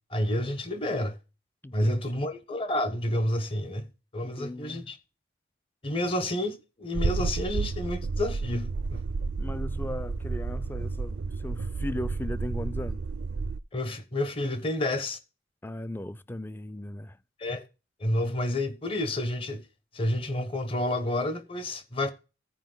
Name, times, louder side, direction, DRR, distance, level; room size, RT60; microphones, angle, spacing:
voice 1, 0.1-1.2 1.7-5.0 5.8-9.0 13.7-15.2 17.4-17.6 18.0-19.6 19.9-22.1, left 1 dB, 30° left, 1.0 m, -29 dB
voice 2, 1.6-2.2 4.2-4.9 9.4-13.0 15.6-17.2, left 1 dB, 10° left, 0.3 m, -37 dB
sound 1, 6.9-13.6, right 4 dB, 75° right, 0.4 m, -31 dB
14.0 x 4.8 x 3.8 m
head